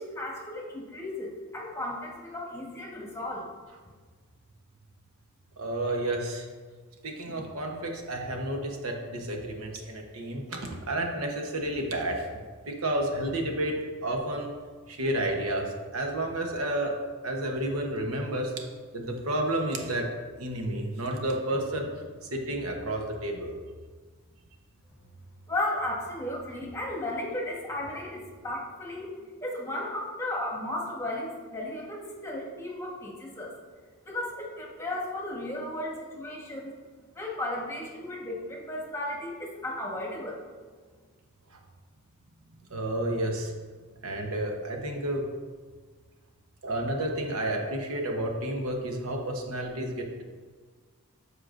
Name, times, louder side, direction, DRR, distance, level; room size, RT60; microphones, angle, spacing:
voice 1, 0.0-3.5 25.5-29.1 29.4-33.5 34.1-36.7 37.1-40.4, left 1 dB, 10° left, -3 dB, 1.2 m, -34 dB
voice 2, 5.6-6.4 7.0-10.6 10.9-14.5 14.9-17.0 17.2-18.5 18.9-20.1 20.4-21.9 22.3-23.5 41.5-41.6 42.7-43.5 44.0-45.2 46.6-50.2, right 1 dB, 70° right, 2 dB, 1.0 m, -31 dB
12.5 x 4.9 x 2.5 m, 1.5 s
head